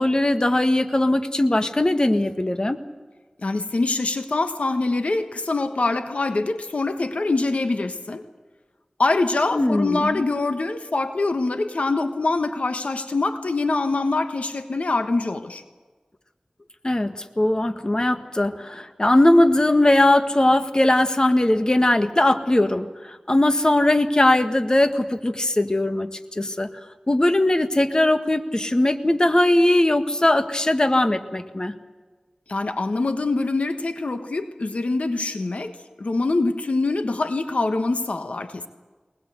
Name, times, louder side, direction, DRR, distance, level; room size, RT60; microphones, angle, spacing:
voice 1, 0.0-2.8 9.5-10.3 16.8-26.7 27.1-31.8, left 1 dB, 35° left, 8 dB, 1.6 m, -20 dB
voice 2, 3.4-8.3 9.0-15.6 32.5-35.7 36.0-38.7, left 3 dB, 80° left, 8 dB, 1.4 m, -24 dB
22.5 x 20.5 x 8.0 m, 1.4 s
wide cardioid pair, 40°, 2 cm